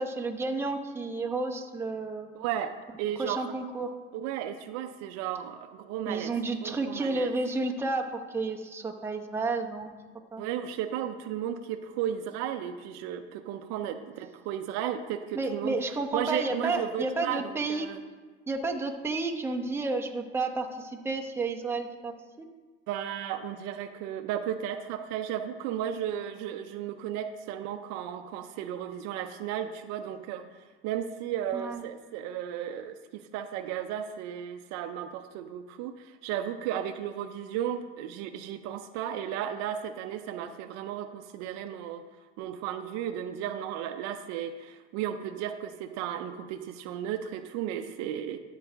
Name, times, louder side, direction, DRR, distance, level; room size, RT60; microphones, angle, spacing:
voice 1, 0.0-2.3 3.2-3.9 6.1-9.9 10.3-10.4 15.3-17.9 18.5-22.1 22.4-22.5 31.5-31.8, right 3 dB, 10° right, 1 dB, 0.8 m, -31 dB
voice 2, 2.3-3.5 4.1-6.3 6.6-7.3 10.4-15.8 16.1-18.0 22.9-42.0 42.4-48.4, right 10 dB, 65° right, 9 dB, 0.6 m, -34 dB
13.0 x 4.9 x 3.4 m, 1.4 s
supercardioid pair, 105°, 29 cm